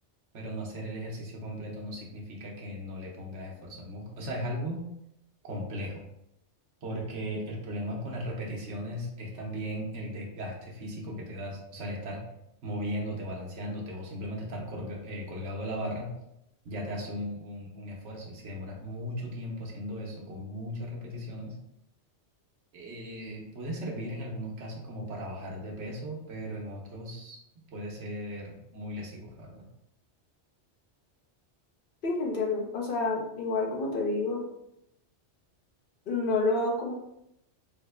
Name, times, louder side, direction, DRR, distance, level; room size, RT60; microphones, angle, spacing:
voice 1, 0.3-4.8 5.4-6.0 6.8-12.2 12.6-16.1 16.6-21.6 22.7-27.4 27.7-29.6, equal, 80° right, -2 dB, 1.1 m, -37 dB
voice 2, 32.0-34.5 36.1-36.9, left 3 dB, 55° left, -1 dB, 0.8 m, -28 dB
3.6 x 2.1 x 3.3 m, 0.80 s
omnidirectional pair, 1.2 m